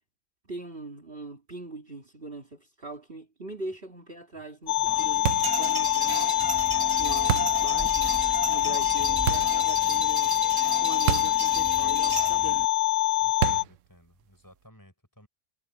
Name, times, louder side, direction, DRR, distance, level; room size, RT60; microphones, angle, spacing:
voice 1, 0.4-6.3 6.9-8.1 8.5-10.4 10.8-12.7, right 2 dB, 45° right, 3.3 m, -41 dB
sound 1, 4.7-13.6, left 17 dB, 60° left, 0.8 m, -25 dB
voice 2, 4.8-5.5 13.2-15.3, equal, 15° left, 4.6 m, -53 dB
sound 2, 4.9-12.7, right 1 dB, 20° right, 1.1 m, -34 dB
sound 3, 5.2-5.6 7.3-7.6 9.3-9.6 11.1-11.4 11.7-11.8 13.4-13.8, right 11 dB, 70° right, 1.0 m, -28 dB
omnidirectional pair, 1.4 m